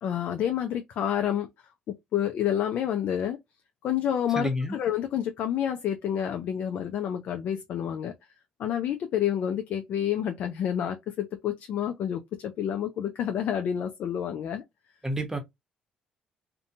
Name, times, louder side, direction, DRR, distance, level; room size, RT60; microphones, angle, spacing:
voice 1, 0.0-1.5 1.9-3.4 3.8-8.1 8.6-14.6, left 10 dB, 65° left, 0.4 m, -29 dB
voice 2, 4.3-4.8 15.0-15.4, equal, 15° right, 0.9 m, -29 dB
2.5 x 2.2 x 2.7 m
supercardioid pair, 70°, 3 cm